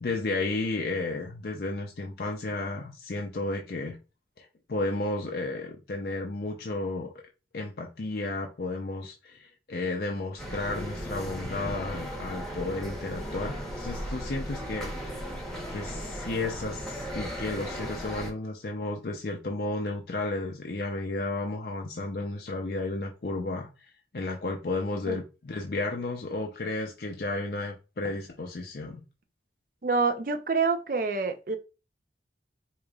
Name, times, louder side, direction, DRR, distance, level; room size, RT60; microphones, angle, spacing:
voice 1, 0.0-4.0 4.4-7.1 7.5-14.9 15.7-23.7 24.1-29.0, left 2 dB, 60° left, 0.5 m, -33 dB
sound 1, 10.4-18.3, equal, 5° left, 0.9 m, -36 dB
voice 2, 29.8-31.6, right 4 dB, 50° right, 0.5 m, -27 dB
4.9 x 3.0 x 2.3 m
head